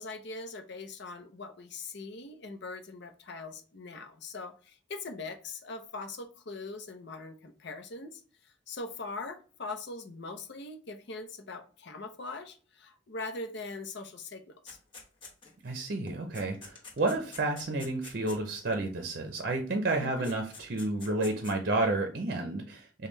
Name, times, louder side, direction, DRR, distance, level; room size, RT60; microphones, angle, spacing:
voice 1, 0.0-14.8 20.0-20.3, left 3 dB, 65° left, 7 dB, 0.7 m, -41 dB
sound 1, 14.7-15.7 16.1-18.8 19.9-20.0 20.2-21.6, left 4 dB, 30° left, 1.0 m, -48 dB
voice 2, 15.6-23.1, right 2 dB, 50° right, 4 dB, 0.6 m, -31 dB
5.2 x 2.2 x 3.1 m, 0.38 s
head